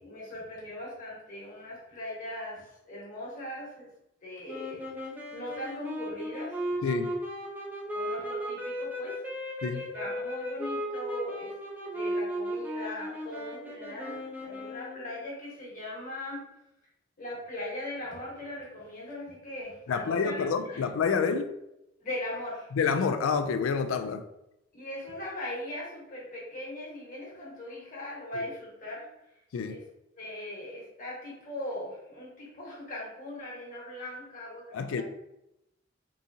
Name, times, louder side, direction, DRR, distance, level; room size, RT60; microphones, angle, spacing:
voice 1, 0.0-3.9 4.2-6.5 7.9-11.6 11.9-16.4 17.2-20.9 22.0-22.7 24.7-29.1 29.6-29.8 30.2-35.0, left 1 dB, 40° left, 1.2 m, -39 dB
sound 1, 4.5-15.2, equal, 10° right, 0.5 m, -36 dB
voice 2, 19.9-21.5 22.7-24.2 28.4-28.5 29.5-29.8 34.7-35.0, left 5 dB, 85° left, 0.3 m, -28 dB
3.7 x 2.8 x 2.6 m
head